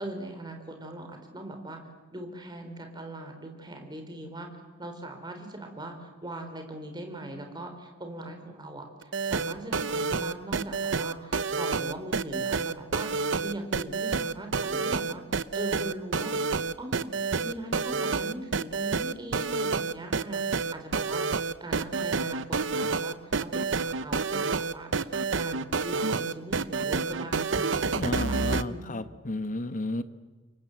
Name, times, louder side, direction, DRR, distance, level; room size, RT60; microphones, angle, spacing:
voice 1, 0.0-1.8 2.1-4.5 4.8-15.2 15.5-17.1 17.4-20.4 20.7-23.2 23.4-29.0, right 1 dB, 20° right, 4 dB, 4.2 m, -40 dB
sound 1, 9.0-28.6, right 4 dB, 70° right, 0.8 m, -28 dB
voice 2, 27.9-30.0, left 2 dB, 40° left, 11 dB, 1.2 m, -32 dB
28.5 x 24.0 x 7.9 m, 1.3 s
head